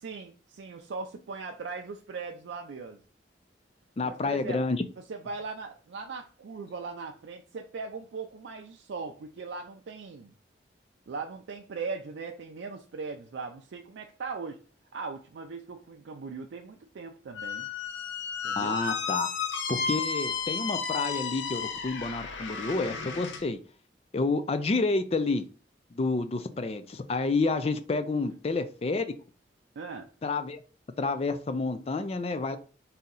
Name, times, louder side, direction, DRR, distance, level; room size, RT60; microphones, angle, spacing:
voice 1, 0.0-3.0 4.0-4.6 5.1-10.3 11.1-14.6 14.9-17.7 18.4-18.8 29.8-30.1, right 4 dB, 85° right, 0.4 m, -39 dB
voice 2, 4.0-4.8 18.6-19.3 19.7-23.6 24.1-25.4 25.9-29.1 30.2-30.6 31.0-32.6, left 3 dB, 35° left, 0.4 m, -29 dB
Squeak, 17.3-23.4, left 5 dB, 90° left, 0.5 m, -33 dB
4.1 x 2.7 x 3.8 m
head